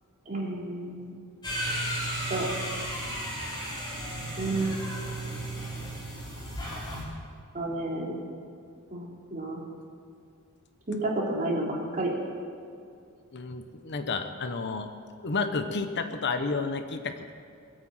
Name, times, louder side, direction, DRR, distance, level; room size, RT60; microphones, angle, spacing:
voice 1, 0.3-1.1 2.3-2.4 4.4-4.8 7.5-8.2 8.9-9.0 9.3-9.6 10.9-12.1, right 2 dB, 35° right, -3 dB, 3.3 m, -30 dB
sound 1, 1.4-7.0, right 1 dB, 20° left, 3.9 m, -34 dB
voice 2, 13.3-14.9 15.2-17.3, left 4 dB, 50° left, 8 dB, 0.9 m, -31 dB
21.5 x 8.8 x 7.7 m, 2.4 s
head